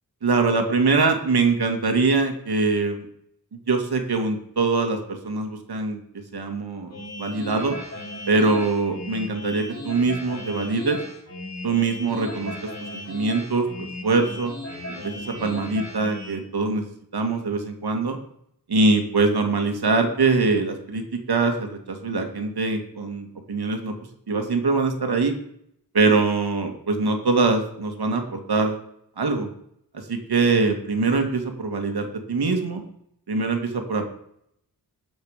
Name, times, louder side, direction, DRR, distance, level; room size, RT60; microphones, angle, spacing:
voice 1, 0.2-3.1 3.7-6.0 6.3-6.9 7.2-7.8 8.3-11.0 11.6-14.5 14.9-18.2 18.7-23.9 24.3-25.3 25.9-28.8 29.2-29.5 30.1-32.8 33.3-34.1, right 3 dB, 80° right, 4 dB, 2.5 m, -23 dB
sound 1, 6.9-16.4, left 1 dB, 45° left, 5.5 m, -36 dB
20.0 x 8.0 x 5.2 m, 0.73 s
wide cardioid pair, 110°, 38 cm